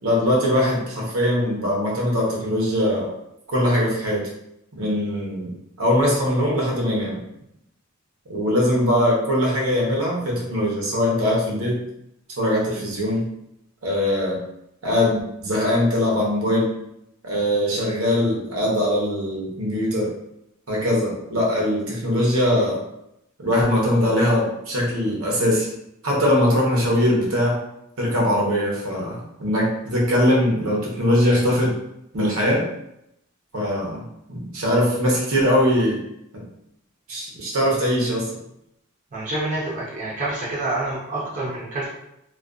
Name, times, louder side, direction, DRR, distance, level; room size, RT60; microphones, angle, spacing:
voice 1, 0.0-3.1 3.5-4.3 4.8-7.2 8.3-11.8 12.4-13.3 13.8-14.4 14.8-16.7 17.2-20.1 20.7-22.8 23.4-25.7 26.0-27.6 28.0-31.7 32.1-32.7 33.5-34.0 34.3-36.0 36.3-36.4 37.1-38.3, left 1 dB, 70° right, -3 dB, 0.7 m, -21 dB
voice 2, 39.1-41.9, right 2 dB, 35° right, -7 dB, 0.6 m, -27 dB
2.4 x 2.2 x 2.3 m, 0.79 s
head